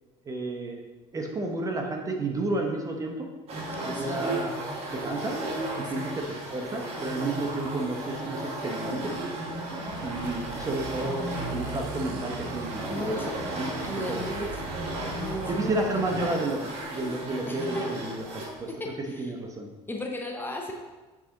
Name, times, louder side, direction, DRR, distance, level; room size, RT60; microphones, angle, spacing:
voice 1, 0.2-0.8 1.1-3.3 3.8-4.5 4.9-5.4 5.8-9.1 10.0-13.7 14.1-14.5 15.5-16.6 16.9-18.7 19.2-19.7, right 2 dB, 25° right, 2 dB, 0.9 m, -31 dB
sound 1, 3.5-18.6, right 1 dB, 50° right, 1.7 m, -35 dB
sound 2, 9.8-16.3, right 3 dB, 85° right, 1.0 m, -39 dB
voice 2, 12.9-13.4 13.8-14.8 15.1-16.4 17.5-18.0 18.7-18.8 19.1-19.3 19.9-20.7, left 1 dB, 15° left, 1 dB, 0.8 m, -35 dB
7.4 x 4.1 x 3.8 m, 1.2 s
cardioid pair, 120°, 14 cm